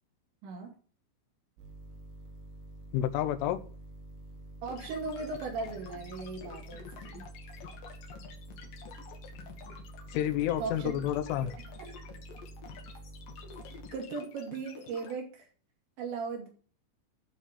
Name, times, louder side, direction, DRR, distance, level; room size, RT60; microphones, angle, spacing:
sound 1, 1.6-13.9, right 1 dB, 90° right, 5.1 m, -48 dB
voice 1, 2.9-3.6 10.1-11.5, left 11 dB, 85° left, 11 dB, 3.4 m, -29 dB
voice 2, 4.6-7.2 10.6-11.0 11.8-11.9 13.9-15.5 16.0-16.5, right 4 dB, 65° right, 1 dB, 4.7 m, -37 dB
sound 2, 4.7-15.1, left 6 dB, 60° left, 2.7 m, -49 dB
12.0 x 4.7 x 7.4 m, 0.41 s
omnidirectional pair, 5.7 m